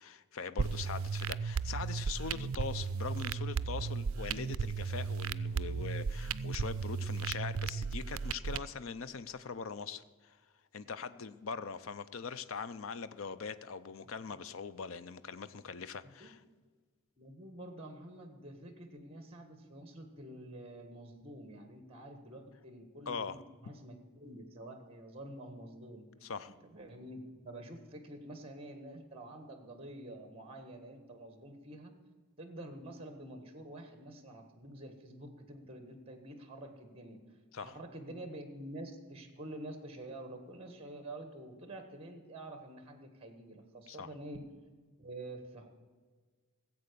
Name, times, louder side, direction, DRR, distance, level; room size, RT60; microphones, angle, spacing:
voice 1, 0.0-10.4 10.7-16.4 23.1-23.4 26.2-26.5 37.5-37.8 43.9-44.1, left 5 dB, 65° left, 14 dB, 0.5 m, -42 dB
sound 1, 0.6-8.6, right 5 dB, 70° right, 0.4 m, -35 dB
voice 2, 17.2-26.0 26.4-31.9 32.4-37.2 37.5-44.4 45.0-45.7, right 1 dB, 25° right, 7 dB, 1.6 m, -48 dB
15.5 x 8.0 x 6.8 m, 1.5 s
head